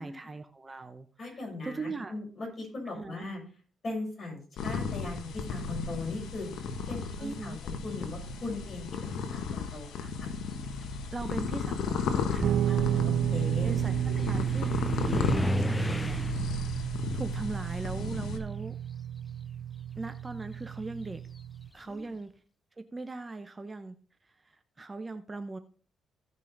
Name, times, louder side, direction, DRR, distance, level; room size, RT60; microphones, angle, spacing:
voice 1, 0.0-2.1 2.9-3.3 7.2-7.6 10.8-12.6 13.6-14.7 15.0-16.2 17.1-18.7 20.0-21.2 21.7-22.3 22.8-24.0 24.3-25.6, right 3 dB, 25° right, 9 dB, 0.8 m, -39 dB
voice 2, 1.2-3.4 3.8-6.5 6.9-10.3 12.6-13.7 14.1-14.2 21.8-22.1, left 2 dB, 40° left, -1 dB, 6.2 m, -39 dB
sound 1, 4.6-18.4, left 5 dB, 75° left, 1.2 m, -35 dB
sound 2, 6.7-7.3 8.3-8.4 8.9-18.9 19.1-21.8, left 2 dB, 15° left, 0.4 m, -38 dB
Guitar, 12.4-21.7, right 10 dB, 65° right, 0.3 m, -32 dB
15.5 x 5.5 x 4.0 m, 0.41 s
cardioid pair, 90°, 0 cm